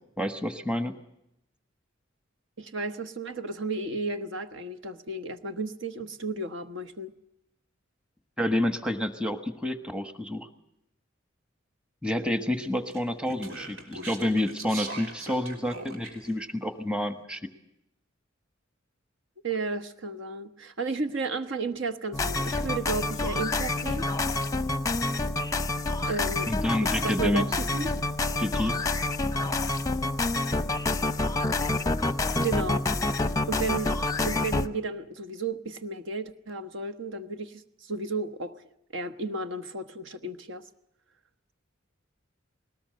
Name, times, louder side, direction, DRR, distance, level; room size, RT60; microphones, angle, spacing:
voice 1, 0.2-1.0 8.4-10.5 12.0-17.4 26.5-27.5 28.4-28.8, left 1 dB, 5° right, 8 dB, 1.3 m, -29 dB
voice 2, 2.6-7.1 19.4-24.1 26.1-26.5 26.8-27.9 32.4-32.9 33.5-33.9 34.2-38.5 38.9-40.6, right 3 dB, 65° right, 9 dB, 1.3 m, -33 dB
Speech, 12.9-16.4, right 2 dB, 85° right, 3.6 m, -41 dB
sound 1, 22.1-34.7, left 2 dB, 15° left, 0.7 m, -28 dB
20.5 x 19.0 x 7.6 m, 0.82 s
head